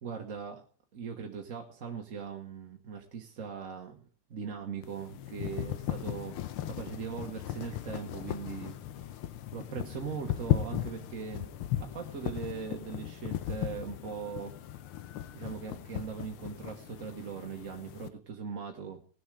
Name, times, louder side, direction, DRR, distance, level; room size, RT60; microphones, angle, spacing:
voice 1, 0.0-0.6 0.9-6.4 6.7-9.2 9.5-11.5 11.8-14.5 15.3-19.0, right 6 dB, 45° right, 2 dB, 1.3 m, -40 dB
sound 1, 4.8-18.1, left 12 dB, 80° left, 1.7 m, -37 dB
19.0 x 7.1 x 4.8 m, 0.41 s
omnidirectional pair, 2.4 m